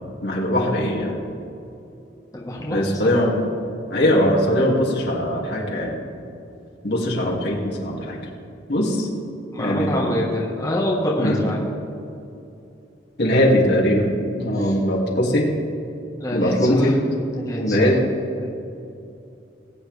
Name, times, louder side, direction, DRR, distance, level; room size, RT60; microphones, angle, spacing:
voice 1, 0.2-1.2 2.7-3.4 3.9-5.9 6.8-8.2 8.7-9.1 9.6-10.1 11.2-11.4 13.2-15.5 16.3-17.0 17.6-18.0, equal, 65° left, -3 dB, 2.4 m, -20 dB
voice 2, 2.3-3.1 9.5-11.6 14.5-14.7 16.2-16.9 17.3-17.8 18.4-18.5, left 1 dB, 20° left, -3 dB, 1.4 m, -26 dB
19.5 x 9.3 x 3.4 m, 2.7 s
head